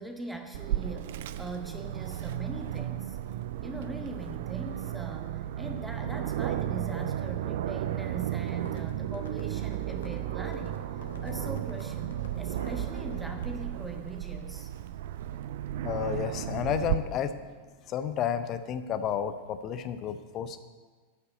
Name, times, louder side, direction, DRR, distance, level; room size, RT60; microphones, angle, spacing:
voice 1, 0.0-3.2 3.6-14.7, right 1 dB, 5° right, 3 dB, 1.1 m, -41 dB
Aircraft, 0.5-16.9, right 12 dB, 55° right, 0.4 m, -34 dB
Livestock farm animals working animals, 7.7-13.5, left 5 dB, 60° left, 0.9 m, -50 dB
sound 1, 12.5-13.8 16.8-18.2, right 2 dB, 80° right, 2.1 m, -51 dB
voice 2, 15.8-17.4 17.9-20.6, left 8 dB, 35° left, 11 dB, 0.7 m, -31 dB
9.5 x 5.6 x 7.9 m, 1.4 s
figure-of-eight pair, 90°, 0 cm